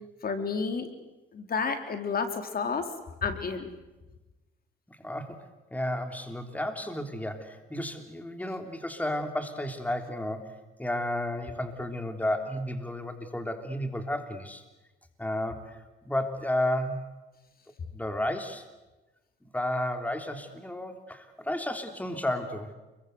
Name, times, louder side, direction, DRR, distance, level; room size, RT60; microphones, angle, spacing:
voice 1, 0.2-0.9 1.3-2.9 3.2-3.7, left 5 dB, 50° left, 6 dB, 4.1 m, -30 dB
voice 2, 4.9-5.4 5.7-14.6 15.2-17.0 17.9-18.7 19.5-22.7, left 1 dB, 5° left, 6 dB, 3.5 m, -32 dB
29.5 x 23.0 x 8.1 m, 1.1 s
cardioid pair, 90°, 20 cm